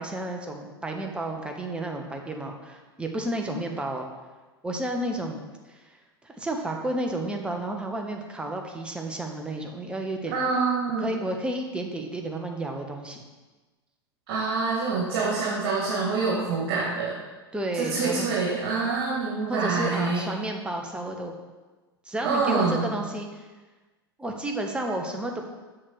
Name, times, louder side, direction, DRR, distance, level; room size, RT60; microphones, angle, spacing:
voice 1, 0.0-4.1 4.6-5.4 5.7-5.8 6.2-10.3 11.0-13.2 17.5-18.3 19.5-21.3 22.0-23.5 24.2-25.4, right 1 dB, 10° right, 2 dB, 1.0 m, -31 dB
voice 2, 10.3-11.2 14.3-17.1 17.7-20.3 22.2-22.9, right 4 dB, 50° right, -6 dB, 2.4 m, -26 dB
7.6 x 6.4 x 4.2 m, 1.2 s
figure-of-eight pair, 90°, 13 cm